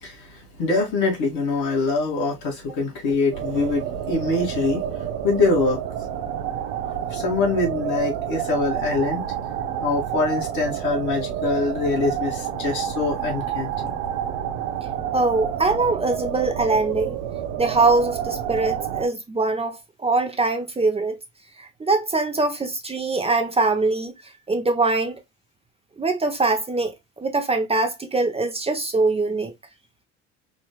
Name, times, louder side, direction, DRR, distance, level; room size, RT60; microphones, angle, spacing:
voice 1, 0.0-4.8 5.2-5.8 6.9-9.3 9.8-13.9, left 3 dB, 65° left, 2.5 m, -24 dB
sound 1, 3.3-19.1, right 10 dB, 65° right, 0.8 m, -29 dB
voice 2, 15.1-17.2 17.6-21.2 21.6-25.2 26.0-29.5, right 3 dB, 20° right, 0.8 m, -23 dB
5.0 x 2.8 x 2.2 m
hypercardioid pair, 65°, 33 cm